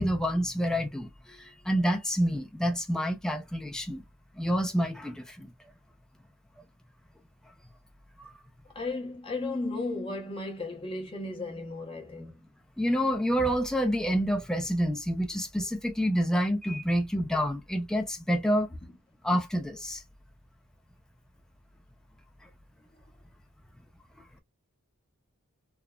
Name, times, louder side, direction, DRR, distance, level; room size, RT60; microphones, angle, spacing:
voice 1, 0.0-4.0 4.4-5.5 8.2-8.3 12.8-18.7 19.2-20.0 22.4-22.5, equal, 5° left, 0.4 m, -28 dB
voice 2, 8.6-12.5, left 2 dB, 25° left, 0.8 m, -35 dB
3.2 x 2.0 x 2.3 m
head